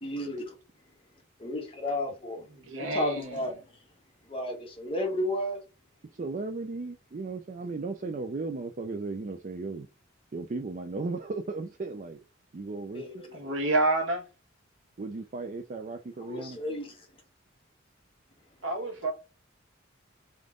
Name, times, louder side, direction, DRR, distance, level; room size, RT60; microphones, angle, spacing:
voice 1, 0.0-0.5 1.4-2.4 2.9-3.5 4.3-5.6 12.9-13.3 16.2-16.9, left 1 dB, 30° left, 1.7 m, -32 dB
voice 2, 2.5-3.5 13.3-14.3 18.6-19.1, right 2 dB, 70° right, 1.5 m, -29 dB
voice 3, 6.1-9.9 10.3-12.2 12.5-13.2 15.0-16.6, right 3 dB, 40° right, 0.4 m, -36 dB
3.9 x 3.6 x 3.7 m
head